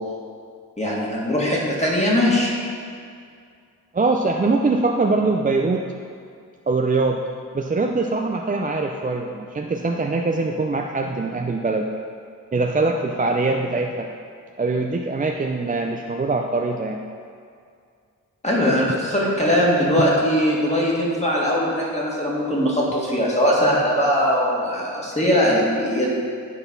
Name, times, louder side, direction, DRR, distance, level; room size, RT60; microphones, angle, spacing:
voice 1, 0.8-2.5 18.4-26.1, equal, 20° left, -5 dB, 2.0 m, -20 dB
voice 2, 3.9-5.9 6.7-7.2 7.5-11.9 12.5-14.1 14.6-17.0, right 3 dB, 25° right, 2 dB, 0.5 m, -22 dB
9.2 x 4.0 x 5.4 m, 2.3 s
cardioid pair, 75°, 33 cm